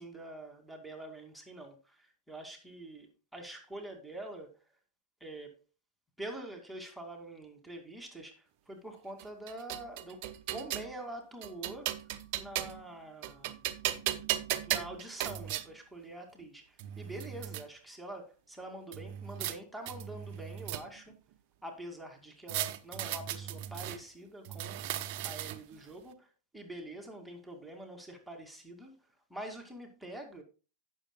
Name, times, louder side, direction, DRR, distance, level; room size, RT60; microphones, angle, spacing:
voice 1, 0.0-4.5 5.2-5.6 6.2-10.2 10.5-11.9 12.3-13.6 14.7-21.2 21.6-24.8 25.2-29.0 29.3-30.4, right 1 dB, ahead, 2.2 m, -45 dB
sound 1, 9.2-10.9 11.4-12.9 13.2-15.7 16.4-16.5 16.8-17.6 18.9-19.6 19.9-21.1 22.5-24.0 24.5-25.8, right 13 dB, 45° right, 0.8 m, -36 dB
16.5 x 6.5 x 2.2 m
figure-of-eight pair, 90°, 0 cm